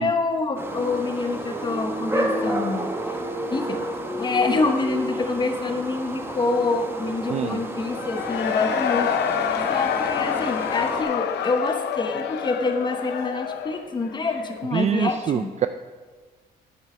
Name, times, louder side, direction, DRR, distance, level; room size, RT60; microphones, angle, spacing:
voice 1, 0.0-3.2 3.5-3.8 4.2-9.2 9.7-15.5, left 3 dB, 25° left, 6 dB, 1.0 m, -26 dB
sound 1, 0.6-11.0, right 1 dB, 15° right, 1.0 m, -31 dB
Cheering / Crowd, 7.9-14.7, left 8 dB, 80° left, 0.7 m, -27 dB
voice 2, 14.7-15.7, right 9 dB, 40° right, 10 dB, 0.4 m, -25 dB
8.9 x 8.3 x 4.4 m, 1.4 s
cardioid pair, 110°, 17 cm